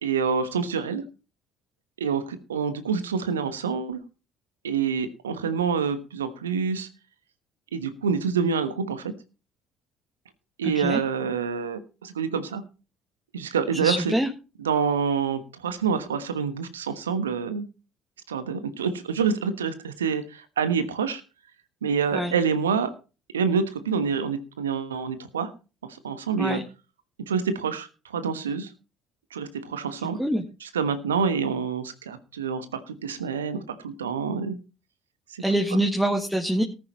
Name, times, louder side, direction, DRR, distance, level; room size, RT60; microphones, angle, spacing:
voice 1, 0.0-1.0 2.0-4.0 4.6-6.9 7.7-9.1 10.6-12.6 13.3-14.1 14.6-17.7 18.3-21.2 21.8-22.9 23.3-25.5 26.0-26.6 27.3-27.9 28.1-28.7 29.3-30.2 30.6-34.6 35.3-35.4, right 6 dB, 80° right, 11 dB, 1.2 m, -27 dB
voice 2, 10.6-11.0 13.7-14.3 22.1-22.3 26.4-26.6 30.2-30.4 35.4-36.6, right 1 dB, 5° right, 3 dB, 1.8 m, -25 dB
18.5 x 9.7 x 3.1 m, 0.33 s
figure-of-eight pair, 55°, 0 cm